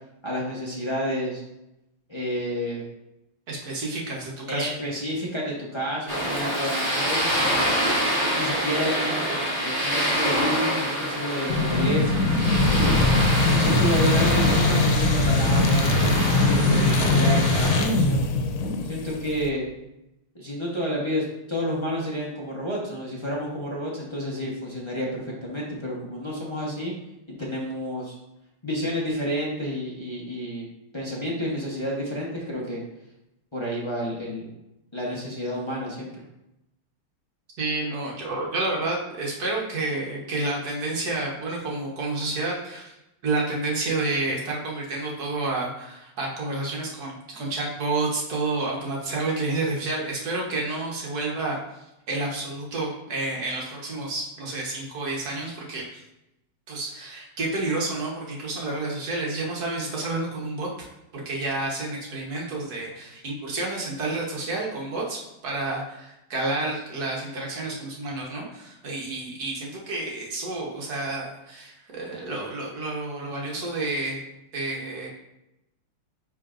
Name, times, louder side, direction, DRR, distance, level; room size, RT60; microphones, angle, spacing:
voice 1, 0.2-1.4 2.1-2.8 4.5-7.7 8.3-13.2 13.6-18.3 18.8-19.6 20.3-26.9 27.4-28.1 28.6-30.6 30.9-32.8 33.5-34.5 34.9-36.1, equal, 25° left, -5 dB, 0.6 m, -30 dB
voice 2, 3.5-4.7 37.6-43.0 43.2-51.6 52.1-56.0 56.7-60.9 61.1-74.2 74.5-75.2, right 2 dB, 55° right, -2 dB, 1.6 m, -30 dB
sound 1, 6.1-17.8, equal, 15° right, 2.0 m, -26 dB
sound 2, 11.5-19.5, left 2 dB, 90° left, 1.5 m, -21 dB
9.7 x 3.8 x 2.5 m, 0.89 s
omnidirectional pair, 2.2 m